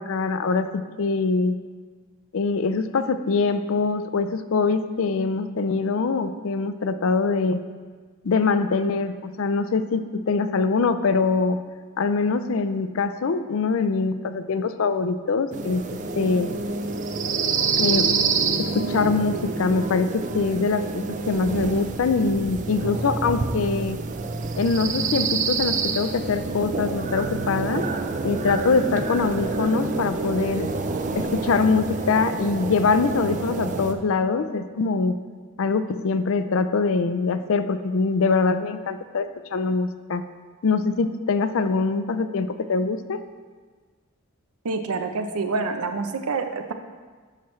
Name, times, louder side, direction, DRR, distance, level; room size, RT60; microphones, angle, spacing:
voice 1, 0.0-1.6 2.3-7.6 8.2-11.6 12.0-15.8 16.2-16.5 17.8-18.1 18.6-24.0 24.6-27.9 28.2-30.7 31.1-35.2 35.6-40.2 40.6-43.2, left 4 dB, 60° left, 11 dB, 0.4 m, -23 dB
sound 1, 15.5-33.9, right 4 dB, 35° right, 0.4 m, -27 dB
voice 2, 44.6-46.7, right 4 dB, 80° right, 7 dB, 0.6 m, -27 dB
10.5 x 5.9 x 3.2 m, 1.5 s
head